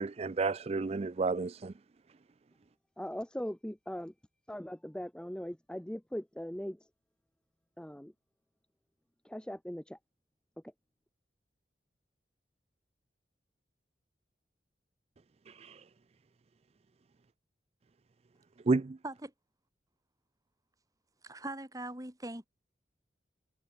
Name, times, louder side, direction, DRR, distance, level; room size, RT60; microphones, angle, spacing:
voice 1, 0.0-1.7 15.5-15.8 18.7-19.0, right 3 dB, 35° right, 0.4 m, -31 dB
voice 2, 3.0-4.1 4.5-6.9 7.8-8.1 9.2-10.0, equal, 5° left, 0.7 m, -40 dB
voice 3, 21.2-22.5, right 1 dB, 20° right, 6.1 m, -41 dB
head